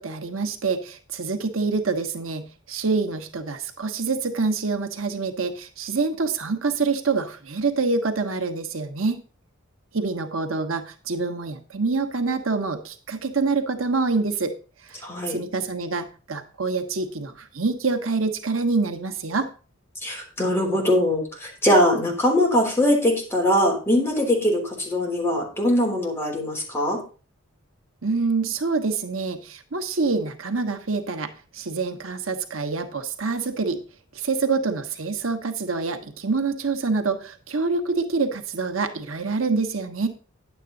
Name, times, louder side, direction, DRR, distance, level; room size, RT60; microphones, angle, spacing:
voice 1, 0.0-9.2 9.9-14.5 14.8-19.5 28.0-33.8 34.1-40.1, right 4 dB, 90° right, 7 dB, 1.2 m, -26 dB
voice 2, 15.0-15.4 20.0-27.0, left 1 dB, 10° left, -1 dB, 3.5 m, -22 dB
10.5 x 8.3 x 4.0 m, 0.35 s
head